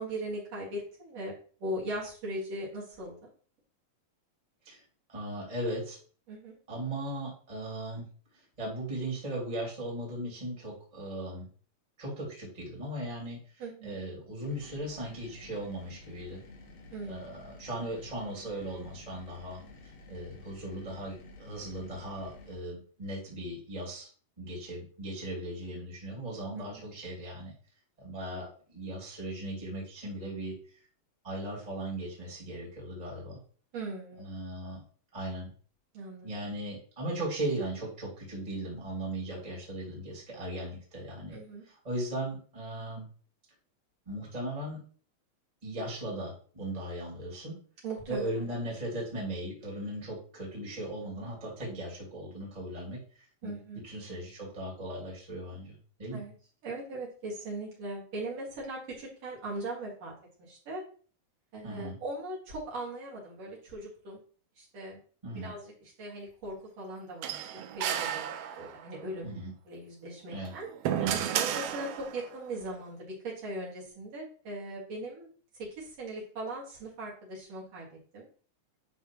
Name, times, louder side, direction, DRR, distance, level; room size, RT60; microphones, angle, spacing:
voice 1, 0.0-1.3 1.6-3.2 6.3-6.6 13.6-14.0 16.9-17.5 26.5-26.8 33.7-34.3 35.9-36.3 41.3-41.6 47.8-48.3 53.4-53.8 56.1-56.3 56.6-60.1 60.4-60.8 61.5-64.2 64.6-65.0 65.3-68.3 68.5-69.3 69.7-70.7 71.3-75.3 75.6-78.2, right 1 dB, 60° right, -5 dB, 3.1 m, -39 dB
voice 2, 5.1-6.0 6.7-8.1 8.3-11.5 12.0-16.4 17.1-19.6 20.1-24.1 24.4-27.5 28.0-30.5 31.2-33.4 34.2-34.8 35.1-35.5 36.2-41.4 41.6-43.0 44.1-44.8 45.6-47.6 48.1-53.5 53.8-56.2 61.6-62.0 65.2-65.5 69.2-69.5 70.3-70.5 71.0-71.2, right 1 dB, 15° right, -4 dB, 2.2 m, -38 dB
sound 1, 14.4-22.6, left 2 dB, 75° left, 2.5 m, -52 dB
sound 2, 67.2-69.0 70.3-72.3, right 10 dB, 80° right, 1.4 m, -33 dB
10.5 x 3.5 x 3.0 m, 0.43 s
omnidirectional pair, 3.3 m